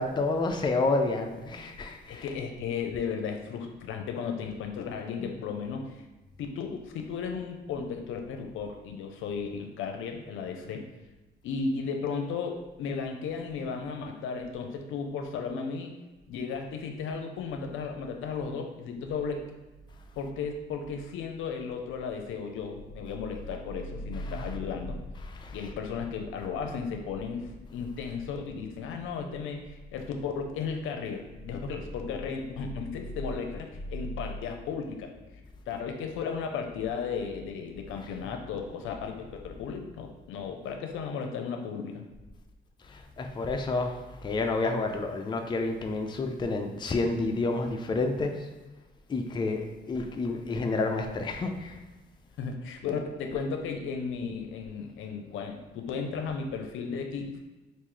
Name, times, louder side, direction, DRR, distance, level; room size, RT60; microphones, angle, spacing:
voice 1, 0.0-2.3 5.2-5.3 24.3-24.5 25.3-25.6 42.9-48.5 49.1-51.8, left 3 dB, 25° left, 4 dB, 0.4 m, -29 dB
voice 2, 2.1-5.9 6.4-10.8 11.4-15.9 16.3-19.6 20.2-25.0 25.5-35.1 35.7-42.1 52.4-57.4, left 5 dB, 80° left, 4 dB, 0.5 m, -35 dB
3.1 x 2.5 x 3.7 m, 1.1 s
cardioid pair, 90°, 20 cm